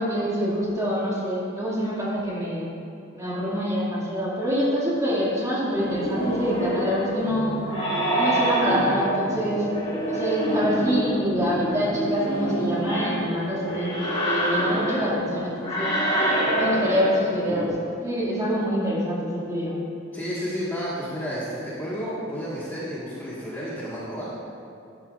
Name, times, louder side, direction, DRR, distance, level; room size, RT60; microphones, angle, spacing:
voice 1, 0.0-2.7 3.1-7.6 8.1-9.7 10.1-16.0 16.5-17.7 18.0-19.8, equal, 15° right, -7 dB, 2.1 m, -26 dB
sound 1, 5.7-17.7, right 1 dB, 30° left, 2.3 m, -26 dB
voice 2, 20.1-24.3, equal, 10° left, -9 dB, 1.5 m, -31 dB
12.0 x 11.5 x 2.4 m, 2.6 s
head